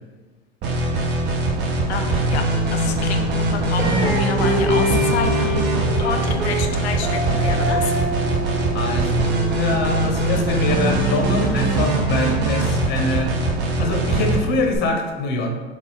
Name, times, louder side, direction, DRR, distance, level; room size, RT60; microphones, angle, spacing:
sound 1, 0.6-14.8, right 2 dB, 35° right, 0.6 m, -21 dB
voice 1, 1.9-7.9, left 6 dB, 75° left, 6 dB, 0.6 m, -29 dB
sound 2, 3.8-10.9, equal, 10° right, 1.1 m, -27 dB
voice 2, 8.7-9.3 9.6-13.3 13.8-15.5, left 2 dB, 30° left, 2 dB, 0.7 m, -24 dB
4.4 x 2.4 x 3.5 m, 1.3 s
hypercardioid pair, 105°, 33 cm